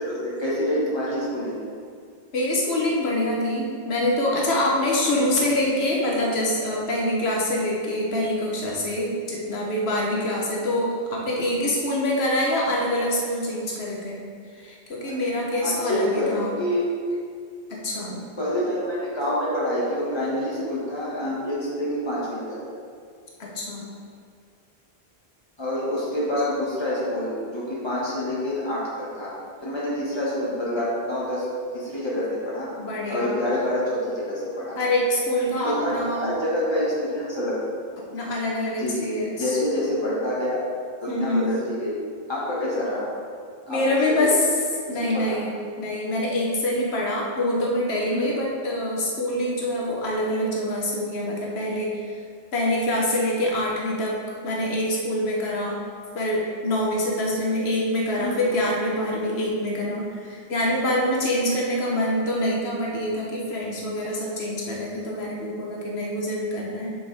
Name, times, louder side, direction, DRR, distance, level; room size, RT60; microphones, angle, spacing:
voice 1, 0.0-1.6 15.0-15.2 15.5-16.9 17.9-22.6 25.6-29.3 29.6-31.5 31.7-32.7 33.1-34.8 35.6-37.6 38.8-40.6 41.0-42.0 42.3-43.1 43.7-44.4 44.9-45.4 48.1-48.4 58.2-58.4, left 1 dB, 25° left, -7 dB, 1.8 m, -27 dB
voice 2, 2.3-14.2 14.5-16.5 17.7-18.2 23.4-23.9 32.8-33.5 34.7-36.3 38.1-39.5 41.1-41.6 43.7-44.4 44.9-52.0 52.5-54.2 54.4-55.8 56.1-66.9, left 1 dB, 90° left, -3 dB, 1.3 m, -25 dB
6.8 x 6.2 x 3.4 m, 2.1 s
omnidirectional pair, 1.0 m